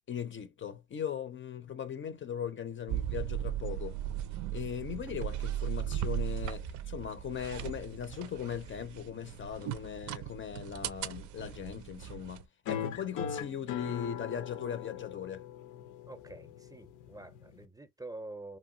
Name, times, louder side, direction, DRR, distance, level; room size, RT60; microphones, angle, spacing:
voice 1, 0.1-4.0 4.5-15.4, left 8 dB, 40° left, 0.5 m, -39 dB
sound 1, 2.9-12.4, right 11 dB, 75° right, 0.5 m, -37 dB
sound 2, 12.7-17.7, left 8 dB, 85° left, 0.6 m, -40 dB
voice 2, 16.1-18.6, right 2 dB, 10° right, 0.5 m, -46 dB
2.9 x 2.2 x 2.6 m
cardioid pair, 90°, 30 cm